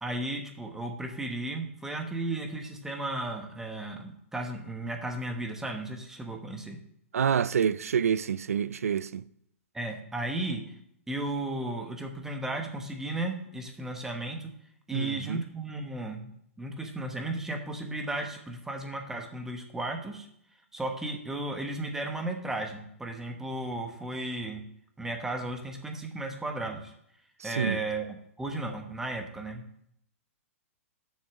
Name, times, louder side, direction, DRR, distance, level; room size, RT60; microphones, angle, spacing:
voice 1, 0.0-6.8 9.7-10.6 11.1-14.5 14.9-16.3 16.6-20.3 20.7-24.6 25.0-26.9 27.4-28.1 28.4-29.6, right 2 dB, 5° right, 1.2 m, -34 dB
voice 2, 7.1-9.3 14.9-15.4 27.4-27.8, right 7 dB, 85° right, 0.4 m, -27 dB
6.9 x 6.4 x 7.1 m
hypercardioid pair, 130°, 8 cm